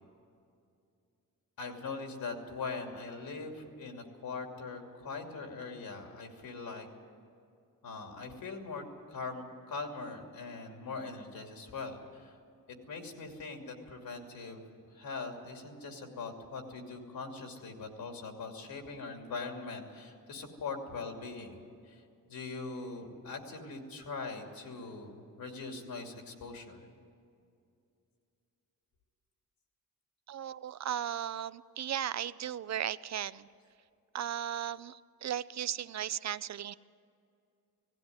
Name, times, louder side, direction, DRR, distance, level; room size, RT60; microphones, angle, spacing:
voice 1, 1.6-6.9 7.8-12.4 12.9-14.6 14.9-22.0 22.3-26.9, left 4 dB, 75° left, 3 dB, 2.8 m, -41 dB
voice 2, 30.3-33.5 34.1-36.7, right 10 dB, 50° right, 16 dB, 0.4 m, -36 dB
18.0 x 16.0 x 9.5 m, 2.5 s
wide cardioid pair, 160°, 35 cm